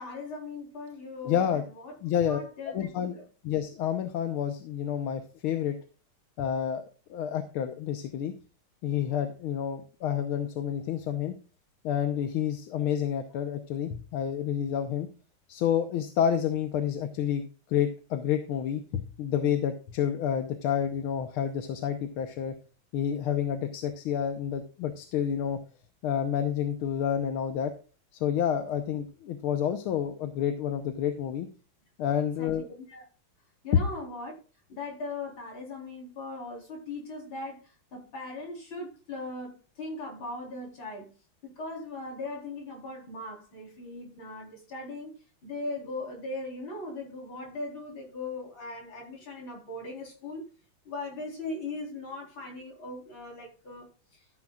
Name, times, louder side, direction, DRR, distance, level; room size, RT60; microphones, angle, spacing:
voice 1, 0.0-3.2 32.4-33.0 33.6-34.3 34.7-41.1 41.4-45.1 45.4-50.4 50.8-53.9, left 2 dB, 65° left, 4.8 m, -39 dB
voice 2, 1.2-1.6 2.0-3.1 3.4-5.8 6.4-6.8 7.1-8.3 8.8-11.3 11.8-15.1 15.5-22.5 22.9-25.6 26.0-27.7 28.2-31.5 32.0-32.6, left 9 dB, 85° left, 1.8 m, -29 dB
13.0 x 9.8 x 2.4 m
omnidirectional pair, 2.3 m